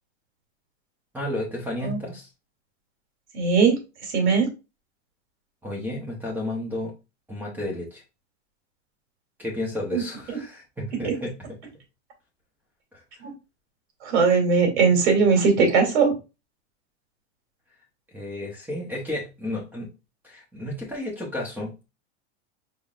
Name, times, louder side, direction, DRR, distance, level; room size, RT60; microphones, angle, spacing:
voice 1, 1.1-2.3 5.6-6.9 7.3-8.0 9.4-11.3 12.9-13.0 18.1-19.9 20.2-21.9, left 1 dB, 5° right, -1 dB, 0.8 m, -32 dB
voice 2, 3.3-4.5 9.9-10.0 11.0-11.1 13.2-13.3 14.0-16.1, right 5 dB, 70° right, 3 dB, 2.4 m, -20 dB
5.0 x 3.7 x 2.4 m, 0.27 s
supercardioid pair, 170°, 34 cm